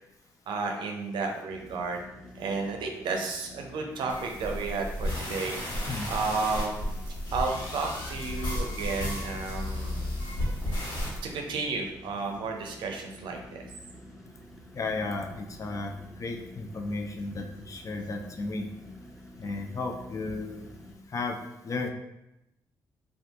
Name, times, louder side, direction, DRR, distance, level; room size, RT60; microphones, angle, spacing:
voice 1, 0.5-2.0 2.4-5.8 6.1-10.1 11.2-13.7, right 4 dB, 75° right, 3 dB, 0.5 m, -32 dB
sound 1, 1.5-21.0, equal, ahead, 0.7 m, -49 dB
sound 2, 4.1-11.2, left 1 dB, 65° left, 1.4 m, -33 dB
voice 2, 14.7-15.9 16.2-18.6 19.4-20.7 21.1-21.4 21.6-21.9, left 3 dB, 40° left, 3 dB, 0.5 m, -34 dB
2.6 x 2.4 x 3.4 m, 0.89 s
supercardioid pair, 55°, 8 cm